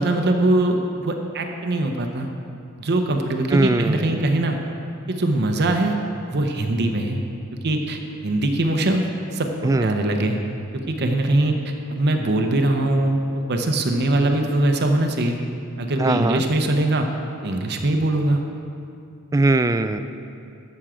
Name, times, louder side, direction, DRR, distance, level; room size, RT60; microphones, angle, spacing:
voice 1, 0.0-2.3 2.8-4.6 5.1-6.0 6.3-7.2 7.6-9.0 9.3-10.4 10.9-15.4 15.8-17.1 17.4-18.4, right 1 dB, 50° right, 4 dB, 0.8 m, -22 dB
voice 2, 3.5-4.3 9.6-9.9 16.0-16.4 19.3-20.0, right 2 dB, 15° right, 10 dB, 0.3 m, -20 dB
13.5 x 6.2 x 5.0 m, 2.5 s
head